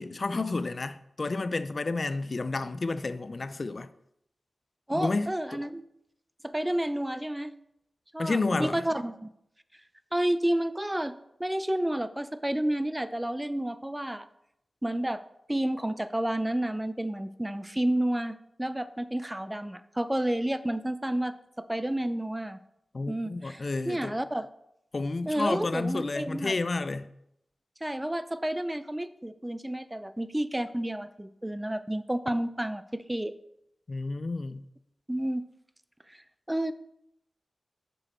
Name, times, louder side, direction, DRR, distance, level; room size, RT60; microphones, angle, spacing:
voice 1, 0.0-3.9 4.9-5.6 8.2-8.8 22.9-24.1 24.9-27.1 33.9-34.7, left 3 dB, 55° left, 0.3 m, -31 dB
voice 2, 4.9-5.8 6.4-7.5 8.1-9.3 10.1-14.3 14.8-15.2 15.5-22.6 23.1-24.5 25.3-26.5 27.8-33.3 35.1-35.4 36.1-36.2 36.5-36.7, right 1 dB, 15° right, 0.4 m, -30 dB
6.2 x 5.1 x 4.3 m
cardioid pair, 45°, 0 cm